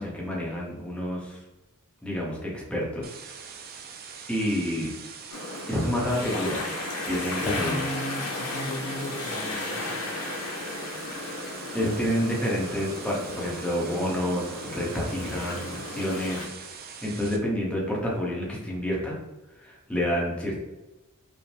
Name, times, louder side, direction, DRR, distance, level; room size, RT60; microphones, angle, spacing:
voice 1, 0.0-1.4 2.0-3.0 4.3-4.9 5.7-6.6 7.0-7.8 11.7-16.7 17.0-19.2 19.6-20.6, equal, 5° left, -4 dB, 0.9 m, -29 dB
sound 1, 3.0-17.4, right 6 dB, 40° right, 0.4 m, -43 dB
sound 2, 5.3-16.5, left 2 dB, 80° left, 0.8 m, -35 dB
voice 2, 7.4-10.0, left 1 dB, 35° left, 5 dB, 0.4 m, -35 dB
5.1 x 2.1 x 3.3 m, 1.1 s
head